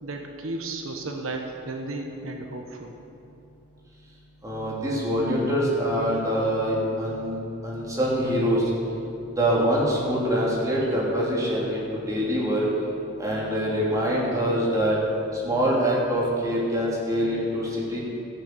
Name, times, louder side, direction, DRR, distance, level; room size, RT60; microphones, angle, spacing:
voice 1, 0.0-2.9, right 2 dB, 85° right, 3 dB, 1.2 m, -34 dB
voice 2, 4.4-7.4 7.6-8.7 9.4-12.7 13.2-15.0 15.3-18.0, equal, 15° right, -5 dB, 3.0 m, -24 dB
15.5 x 6.9 x 7.9 m, 2.8 s
head